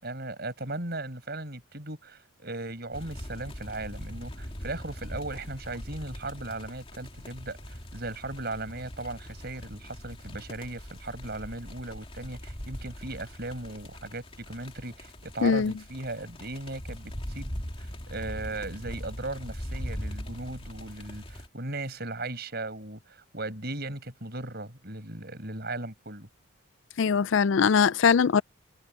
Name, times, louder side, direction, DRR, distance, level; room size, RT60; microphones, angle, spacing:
voice 1, 0.0-26.3, right 2 dB, 50° right, 6.9 m, -37 dB
sound 1, 2.9-21.5, equal, 25° left, 2.9 m, -41 dB
voice 2, 15.4-15.7 27.0-28.4, left 6 dB, 60° left, 0.4 m, -21 dB
head